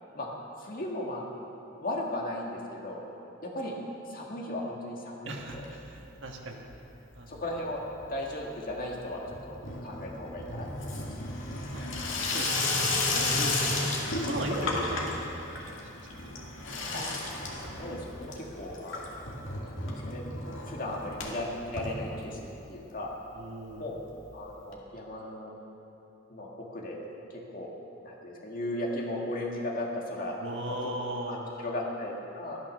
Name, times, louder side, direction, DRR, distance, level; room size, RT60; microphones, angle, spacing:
voice 1, 0.6-1.2 1.8-3.1 3.4-3.8 4.1-5.7 7.3-7.8 8.1-10.9 16.9-17.0 17.5-19.3 19.6-20.3 20.6-22.4 22.7-23.1 23.8-24.0 24.3-25.5 26.3-27.0 27.3-27.7 28.0-30.4 30.8-30.9 31.3-32.6, left 1 dB, 45° left, -2 dB, 2.1 m, -36 dB
voice 2, 5.2-6.6 7.1-7.4 11.7-11.9 12.3-12.5 12.9-15.0 15.5-15.6 15.9-16.3 23.3-23.9 30.4-31.5, right 1 dB, 65° right, 1 dB, 1.5 m, -38 dB
Water tap faucet / Sink (filling or washing), 5.5-6.3 6.5-7.1 7.4-22.7 23.0-23.1 23.3-23.4 23.6-23.7 24.7-24.8, left 2 dB, 75° left, 2.2 m, -33 dB
12.5 x 12.0 x 6.6 m, 3.0 s
head